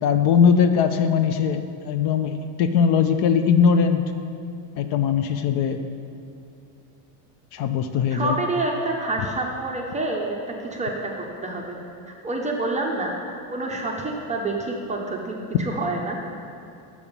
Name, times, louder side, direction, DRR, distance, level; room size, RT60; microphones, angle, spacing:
voice 1, 0.0-4.1 4.8-5.8 7.5-8.4, left 7 dB, 55° left, 8 dB, 0.5 m, -20 dB
voice 2, 8.1-10.4 10.7-11.1 11.4-11.8 12.1-13.1 13.5-16.2, right 2 dB, 15° right, 0 dB, 0.5 m, -27 dB
6.1 x 5.5 x 6.9 m, 2.5 s
cardioid pair, 145°, 49 cm